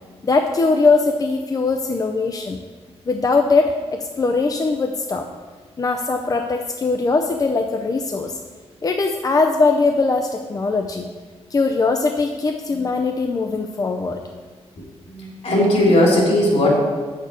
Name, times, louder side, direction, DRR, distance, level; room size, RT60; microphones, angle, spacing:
voice 1, 0.2-2.6 3.1-5.3 5.8-8.3 8.8-11.1 11.5-14.2, left 3 dB, 35° left, 4 dB, 0.5 m, -20 dB
voice 2, 15.1-16.7, left 1 dB, 70° left, -3 dB, 3.1 m, -17 dB
8.0 x 6.6 x 5.1 m, 1.4 s
wide cardioid pair, 120°, 11 cm